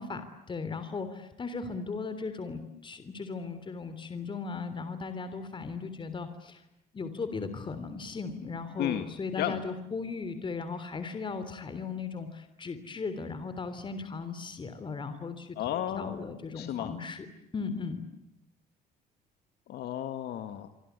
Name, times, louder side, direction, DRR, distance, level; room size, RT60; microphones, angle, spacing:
voice 1, 0.0-6.6 6.9-17.3 17.5-18.1, left 4 dB, 30° left, 11 dB, 3.3 m, -37 dB
voice 2, 15.6-16.3 16.6-16.9 19.7-20.7, left 11 dB, 70° left, 9 dB, 2.0 m, -33 dB
28.0 x 25.0 x 8.3 m, 0.85 s
cardioid pair, 110°, 17 cm